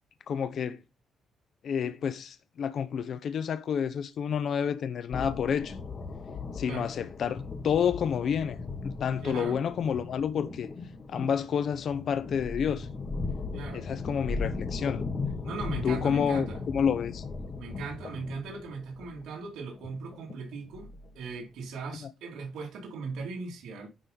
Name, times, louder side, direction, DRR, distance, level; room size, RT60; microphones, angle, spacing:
voice 1, 0.3-0.8 1.6-5.8 6.5-8.6 9.0-10.7 11.1-12.9 13.7-15.0 15.8-17.2, left 7 dB, 55° left, 0.7 m, -29 dB
sound 1, 5.1-21.3, left 4 dB, 35° left, 1.6 m, -37 dB
voice 2, 9.2-9.6 13.5-13.9 15.4-16.6 17.6-20.9 21.2-23.9, right 4 dB, 80° right, 2.5 m, -38 dB
10.0 x 3.8 x 5.1 m
cardioid pair, 120°, 0 cm